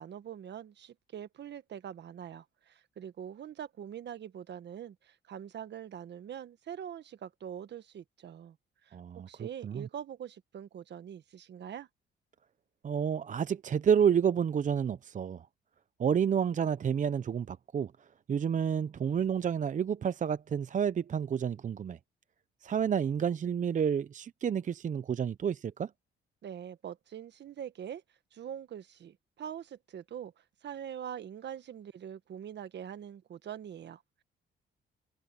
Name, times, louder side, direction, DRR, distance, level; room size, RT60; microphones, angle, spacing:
voice 1, 0.0-8.6 8.8-9.0 9.3-11.9 26.4-28.0 28.3-34.2, right 9 dB, 60° right, 1.5 m, -43 dB
voice 2, 8.9-9.9 12.8-15.5 16.0-22.0 22.6-25.9, right 7 dB, 40° right, 0.6 m, -30 dB
cardioid pair, 90°, 20 cm